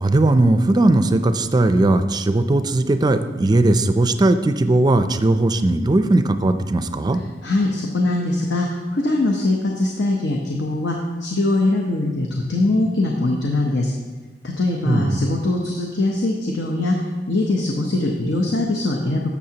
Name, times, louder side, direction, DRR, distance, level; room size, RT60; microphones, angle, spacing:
voice 1, 0.0-7.2 14.8-15.2, right 2 dB, 25° right, 9 dB, 0.4 m, -18 dB
voice 2, 7.4-13.9 14.4-19.2, left 2 dB, 75° left, 0 dB, 0.9 m, -22 dB
12.0 x 7.0 x 2.9 m, 1.3 s
head